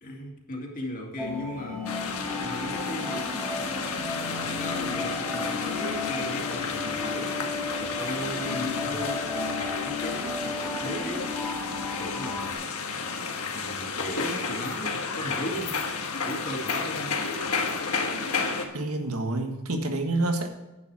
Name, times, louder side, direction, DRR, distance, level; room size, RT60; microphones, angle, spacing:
voice 1, 0.0-1.9 2.4-3.3 4.2-7.4 7.8-11.3 12.0-12.7 13.5-15.8 16.2-17.2, equal, 40° left, 0 dB, 2.3 m, -37 dB
sound 1, 1.2-12.5, left 3 dB, 5° left, 2.0 m, -34 dB
sound 2, 1.9-18.7, left 4 dB, 75° left, 1.5 m, -31 dB
voice 2, 18.7-20.5, right 2 dB, 75° right, 5 dB, 1.6 m, -28 dB
10.5 x 8.6 x 4.8 m, 1.0 s
head